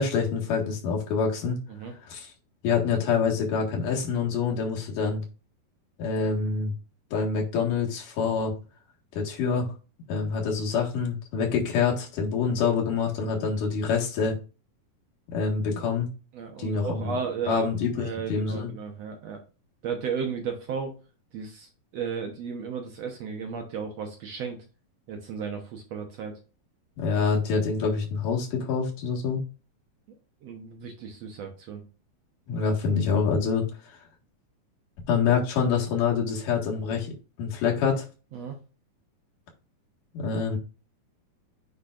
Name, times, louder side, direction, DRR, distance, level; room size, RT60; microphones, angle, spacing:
voice 1, 0.0-1.6 2.1-2.3 2.6-5.2 6.0-6.7 7.1-8.6 9.1-9.7 10.1-14.4 15.3-16.1 16.6-17.2 17.5-18.7 27.0-29.4 32.5-33.7 35.1-37.1 37.4-38.0 40.1-40.6, left 5 dB, 70° left, -1 dB, 3.3 m, -26 dB
voice 2, 16.3-19.4 19.8-21.0 21.3-24.6 25.1-26.4 30.4-31.8 38.3-38.6, right 6 dB, 65° right, 4 dB, 1.9 m, -34 dB
8.8 x 5.6 x 2.5 m, 0.33 s
omnidirectional pair, 3.8 m